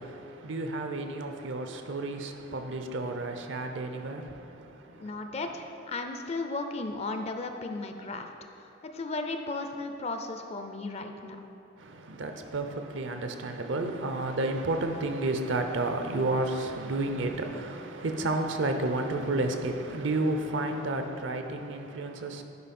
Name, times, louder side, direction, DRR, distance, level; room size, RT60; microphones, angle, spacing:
voice 1, 0.0-5.1 11.8-22.4, right 2 dB, 70° right, 0.6 m, -31 dB
voice 2, 5.0-8.3 8.5-11.5, left 3 dB, 35° left, 0.4 m, -35 dB
9.5 x 5.2 x 4.2 m
head